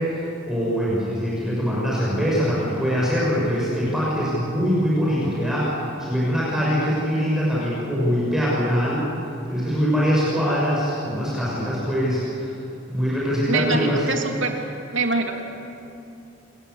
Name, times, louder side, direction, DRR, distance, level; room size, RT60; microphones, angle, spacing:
voice 1, 0.0-5.7 6.0-9.1 9.5-12.5 12.9-14.1, equal, 5° right, -7 dB, 6.8 m, -23 dB
voice 2, 13.5-14.6 14.9-15.4, right 3 dB, 75° right, 2 dB, 3.0 m, -24 dB
28.5 x 21.5 x 8.4 m, 2.7 s
head